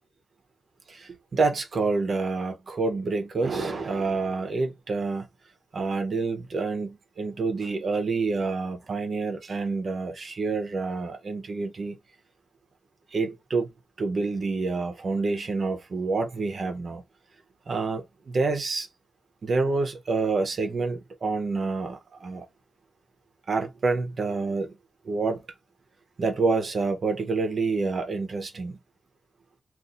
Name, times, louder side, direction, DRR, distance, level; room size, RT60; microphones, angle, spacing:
voice 1, 0.9-5.3 5.7-12.0 13.1-13.7 14.0-17.0 17.7-18.9 19.4-22.4 23.5-24.8 25.0-25.4 26.2-28.8, right 3 dB, 55° right, 0.8 m, -28 dB
2.7 x 2.4 x 3.8 m
wide cardioid pair, 105°, 0 cm